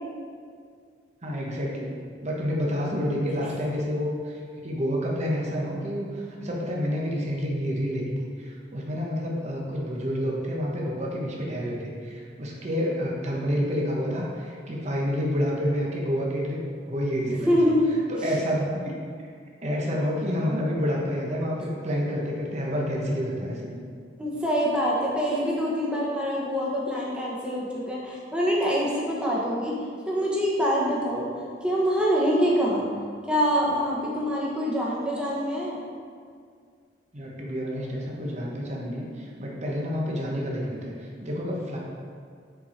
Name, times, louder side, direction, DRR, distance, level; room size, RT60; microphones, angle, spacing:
voice 1, 1.2-1.9 2.2-16.6 16.9-17.7 18.1-18.8 19.6-23.8 37.1-41.8, equal, 40° right, -2 dB, 1.2 m, -29 dB
voice 2, 17.2-17.9 18.2-18.3 24.2-29.7 30.1-31.3 31.6-32.9 33.3-35.8, equal, 5° right, -5 dB, 1.3 m, -25 dB
7.0 x 4.6 x 4.5 m, 2.1 s
head